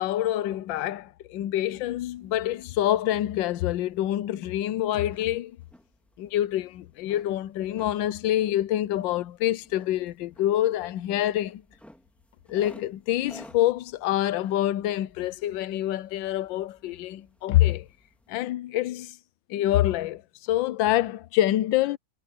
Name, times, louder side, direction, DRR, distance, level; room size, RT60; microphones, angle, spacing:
voice 1, 0.0-5.6 6.2-11.6 12.5-17.9 18.3-19.2 19.5-22.0, left 13 dB, 70° left, 1.3 m, -26 dB
sound 1, 2.0-18.5, equal, ahead, 2.4 m, -56 dB
omnidirectional pair, 2.3 m